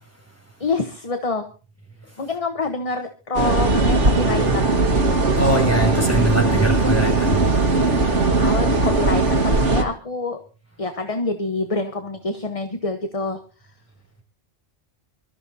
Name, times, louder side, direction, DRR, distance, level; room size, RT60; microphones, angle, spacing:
voice 1, 0.6-1.5 2.2-4.8 8.1-10.4 10.8-13.4, left 3 dB, 30° left, 1.1 m, -26 dB
sound 1, 3.3-9.8, right 3 dB, 85° right, 2.0 m, -19 dB
voice 2, 5.4-7.4, right 2 dB, 10° left, 5.9 m, -22 dB
25.0 x 14.0 x 2.7 m
omnidirectional pair, 1.2 m